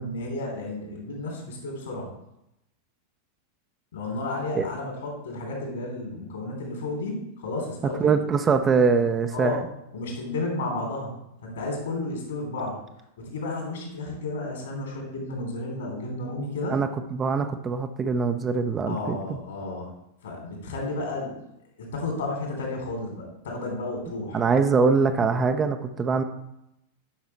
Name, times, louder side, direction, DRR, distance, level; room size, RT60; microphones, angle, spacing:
voice 1, 0.0-2.1 3.9-8.3 9.3-9.6 9.9-11.1 11.4-12.8 13.2-16.8 18.9-19.9 20.2-21.4 21.8-24.4, left 2 dB, 65° left, 1 dB, 3.2 m, -32 dB
voice 2, 8.0-9.6 16.7-19.4 24.3-26.2, right 5 dB, 20° right, 7 dB, 0.7 m, -23 dB
10.0 x 6.0 x 4.3 m, 0.83 s
figure-of-eight pair, 90°, 0 cm